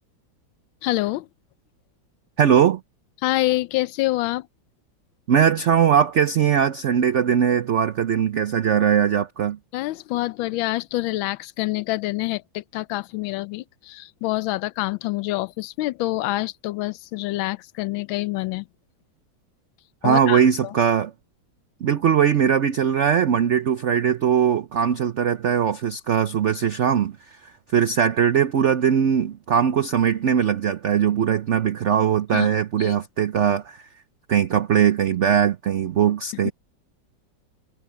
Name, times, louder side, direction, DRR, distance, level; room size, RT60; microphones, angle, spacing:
voice 1, 0.8-1.3 3.2-4.5 9.7-18.7 20.0-20.7 32.3-32.5 32.8-33.0 36.3-36.5, left 18 dB, 90° left, 1.4 m, -26 dB
voice 2, 2.4-2.8 5.3-9.6 20.0-21.1 21.8-27.4 27.7-33.8 34.3-36.5, right 8 dB, 80° right, 0.6 m, -20 dB
omnidirectional pair, 2.1 m